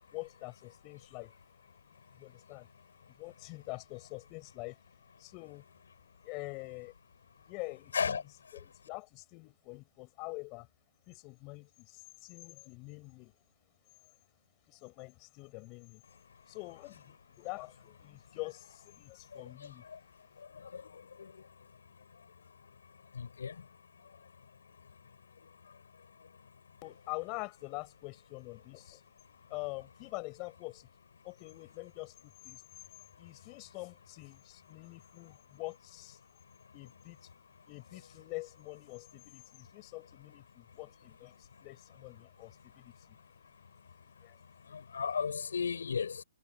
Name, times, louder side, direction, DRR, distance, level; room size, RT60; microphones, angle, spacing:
voice 1, 0.1-1.3 2.1-2.7 3.1-4.8 5.2-5.6 6.2-6.9 7.5-8.2 8.5-10.7 11.1-13.3 14.7-16.0 16.5-19.8 26.8-29.0 29.5-30.9 31.2-32.6 33.2-36.2 36.7-37.3 37.7-43.2 44.2-44.4 44.6-44.8, left 27 dB, 25° left, 7.5 m, -45 dB
voice 2, 23.2-23.5 44.7-46.2, left 6 dB, 80° left, 6.2 m, -33 dB
hypercardioid pair, 160°, 0 cm